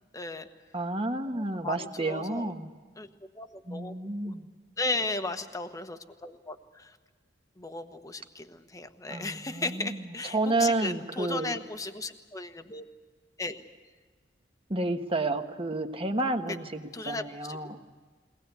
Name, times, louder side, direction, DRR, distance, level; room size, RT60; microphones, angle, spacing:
voice 1, 0.1-0.5 1.3-2.5 3.0-3.1 3.4-3.9 4.2-4.3 4.8-7.0 7.6-12.8 13.4-13.6 16.9-17.6, left 2 dB, 20° left, 8 dB, 1.2 m, -36 dB
voice 2, 0.7-2.7 3.7-4.5 9.1-10.0 10.3-11.6 14.7-17.8, right 2 dB, 30° right, 6 dB, 1.3 m, -30 dB
22.5 x 19.0 x 8.2 m, 1.4 s
head